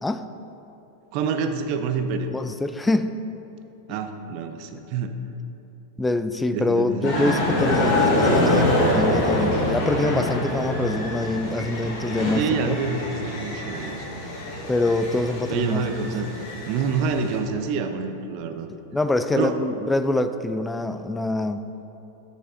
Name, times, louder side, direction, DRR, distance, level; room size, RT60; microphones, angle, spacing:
voice 1, 1.1-2.3 3.9-5.2 6.5-7.3 12.4-14.1 15.5-16.3 16.7-18.7 19.4-19.6, right 5 dB, 45° right, 7 dB, 0.5 m, -27 dB
voice 2, 2.3-3.2 6.0-12.8 14.7-16.1 18.7-21.6, left 2 dB, 10° left, 10 dB, 0.3 m, -25 dB
sound 1, 7.0-17.4, left 1 dB, 40° left, 1.6 m, -25 dB
6.6 x 5.0 x 5.5 m, 2.9 s
figure-of-eight pair, 90°, 0 cm